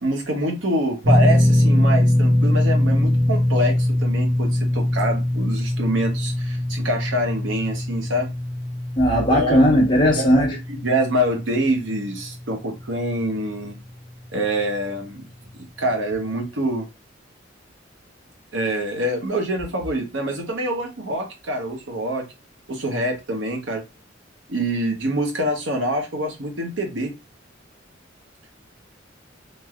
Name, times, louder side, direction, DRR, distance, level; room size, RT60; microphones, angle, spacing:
voice 1, 0.0-8.3 9.3-9.8 10.1-13.8 14.3-15.2 15.8-16.9 18.5-22.3 22.7-23.8 24.5-27.1, right 1 dB, 75° right, 0.9 m, -25 dB
sound 1, 1.0-13.3 13.5-13.8 15.5-15.6, left 1 dB, 50° right, 1.2 m, -22 dB
voice 2, 9.0-10.5, equal, 25° left, 0.8 m, -17 dB
3.2 x 2.6 x 2.2 m
head